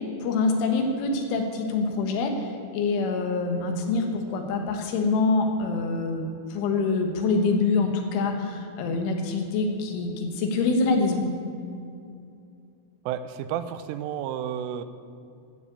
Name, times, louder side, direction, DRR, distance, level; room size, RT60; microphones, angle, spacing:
voice 1, 0.2-11.3, left 3 dB, 80° left, 4 dB, 3.8 m, -25 dB
voice 2, 13.1-14.8, right 9 dB, 85° right, 12 dB, 3.1 m, -31 dB
13.5 x 7.4 x 8.5 m, 2.5 s
omnidirectional pair, 5.7 m